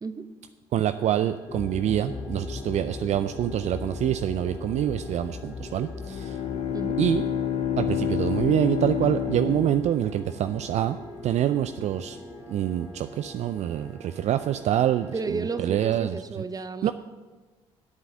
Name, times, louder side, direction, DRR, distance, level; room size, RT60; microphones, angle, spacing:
voice 1, 0.7-6.4 7.0-7.2 7.8-11.0 11.2-12.2 12.5-16.2 16.8-16.9, right 11 dB, 55° right, 10 dB, 0.4 m, -26 dB
sound 1, 0.8-16.0, equal, 5° left, 1.9 m, -47 dB
sound 2, 1.5-16.3, left 4 dB, 35° left, 0.9 m, -40 dB
Bowed string instrument, 6.0-10.6, left 10 dB, 60° left, 1.2 m, -29 dB
voice 2, 15.1-16.9, right 4 dB, 25° right, 11 dB, 0.8 m, -32 dB
8.0 x 7.5 x 7.1 m, 1.3 s
hypercardioid pair, 50°, 14 cm